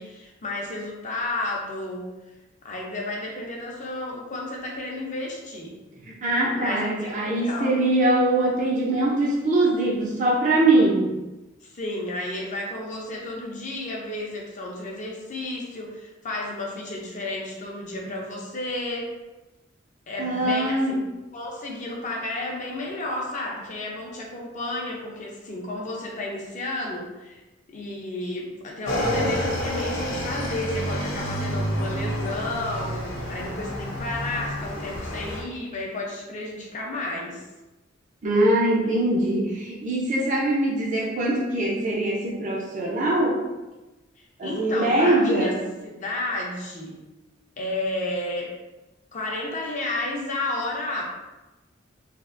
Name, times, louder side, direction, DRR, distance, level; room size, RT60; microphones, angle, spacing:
voice 1, 0.0-2.1 2.6-5.8 6.6-7.8 11.6-19.1 20.1-21.0 21.3-27.4 27.7-37.4 44.2-45.5 45.8-47.0 47.6-48.5 49.1-51.0, left 2 dB, 40° left, -1 dB, 0.6 m, -32 dB
voice 2, 6.1-11.2 20.2-20.9 38.2-43.4 44.4-45.6, right 1 dB, 40° right, -4 dB, 0.5 m, -22 dB
Motorcycle / Engine, 28.9-35.4, equal, 90° left, 0.7 m, -29 dB
3.3 x 2.4 x 2.5 m, 1.1 s
head